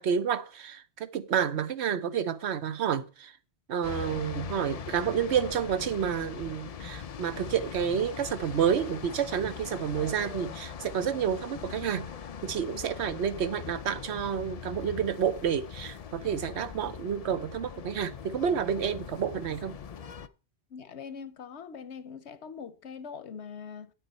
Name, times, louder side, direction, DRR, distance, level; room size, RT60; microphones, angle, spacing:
voice 1, 0.0-3.3 3.7-12.1 12.4-19.8, right 8 dB, 80° right, 1.0 m, -29 dB
sound 1, 3.8-20.3, left 7 dB, 50° left, 0.4 m, -41 dB
voice 2, 20.7-23.9, left 6 dB, 85° left, 1.1 m, -42 dB
8.8 x 8.7 x 4.2 m
omnidirectional pair, 1.1 m